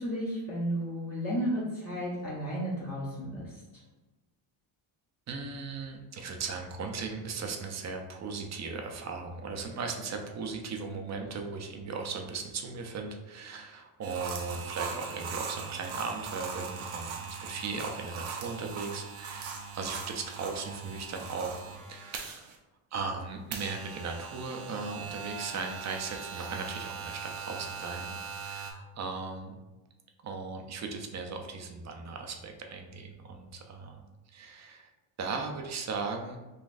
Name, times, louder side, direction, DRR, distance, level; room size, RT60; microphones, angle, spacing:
voice 1, 0.0-3.5, equal, 30° left, -7 dB, 0.9 m, -33 dB
voice 2, 5.3-21.6 21.9-22.5 22.9-29.6 30.2-34.9 35.2-36.4, right 4 dB, 35° right, 3 dB, 0.5 m, -37 dB
sound 1, 14.0-22.6 23.5-28.7, right 5 dB, 70° right, 0.7 m, -40 dB
3.9 x 2.5 x 2.5 m, 1.1 s
cardioid pair, 110°, 50 cm